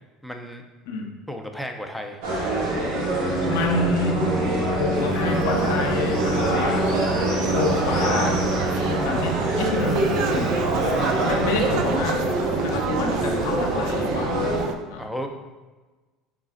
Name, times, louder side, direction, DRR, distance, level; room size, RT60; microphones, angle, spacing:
voice 1, 0.2-0.6 1.3-2.2 10.6-11.2 15.0-15.3, equal, ahead, 4 dB, 0.5 m, -34 dB
sound 1, 2.2-14.6, right 1 dB, 80° right, 1.1 m, -25 dB
Keyboard (musical), 3.2-11.3, equal, 35° right, 0.8 m, -30 dB
voice 2, 3.5-4.3 4.8-7.0 7.5-8.4 8.9-10.5 11.2-12.3 12.6-14.6 14.9-15.1, left 3 dB, 80° left, 2 dB, 0.6 m, -28 dB
sound 2, 4.9-14.7, right 7 dB, 65° right, 0.3 m, -30 dB
4.0 x 3.6 x 2.4 m, 1.3 s
supercardioid pair, 90°, 0 cm